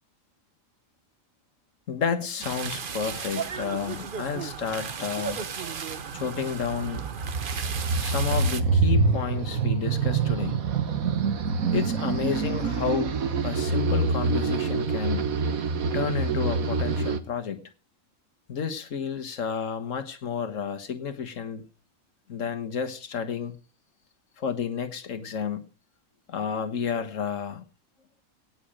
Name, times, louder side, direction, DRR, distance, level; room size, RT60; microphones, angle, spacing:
voice 1, 1.9-5.4 6.1-7.1 8.0-10.6 11.7-15.4 15.9-17.7 18.5-21.7 22.3-23.6 24.4-25.7 26.3-27.6, left 6 dB, 65° left, 9 dB, 1.7 m, -31 dB
sound 1, 2.4-8.6, right 6 dB, 45° right, 1.0 m, -35 dB
sound 2, 5.9-17.2, right 4 dB, 85° right, 1.5 m, -26 dB
17.5 x 6.2 x 6.5 m, 0.37 s
omnidirectional pair, 1.4 m